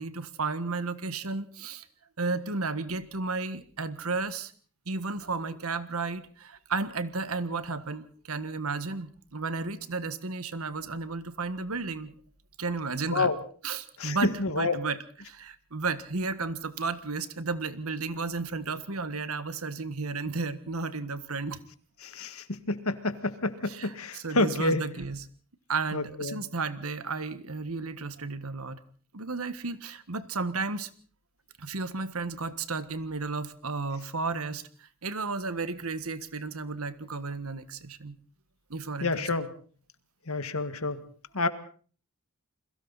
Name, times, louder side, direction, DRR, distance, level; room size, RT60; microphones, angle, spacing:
voice 1, 0.0-1.8 2.2-4.5 4.9-12.1 12.6-13.3 13.6-21.6 23.6-25.3 25.7-28.8 29.1-30.9 31.6-38.2 38.7-39.4, right 4 dB, 90° right, 13 dB, 1.5 m, -33 dB
voice 2, 14.0-14.8 22.0-24.8 25.9-26.4 39.0-39.5 40.3-41.0 41.3-41.5, left 2 dB, 85° left, 11 dB, 1.8 m, -28 dB
29.5 x 22.0 x 4.1 m, 0.43 s
head